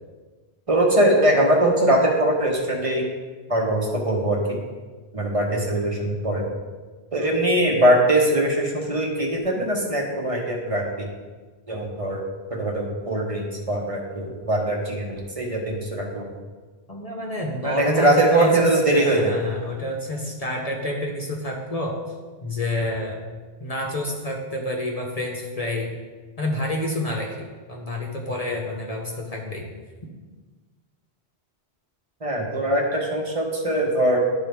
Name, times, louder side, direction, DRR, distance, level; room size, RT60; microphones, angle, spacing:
voice 1, 0.7-3.0 3.5-4.6 5.1-6.5 7.1-11.1 11.7-12.2 12.5-16.2 17.6-19.5 32.2-34.2, right 1 dB, 30° right, -1 dB, 1.2 m, -21 dB
voice 2, 16.9-22.0 22.4-23.2 23.6-26.0 26.4-29.6, left 1 dB, 40° left, -1 dB, 0.9 m, -28 dB
11.5 x 4.0 x 3.4 m, 1.3 s
omnidirectional pair, 1.1 m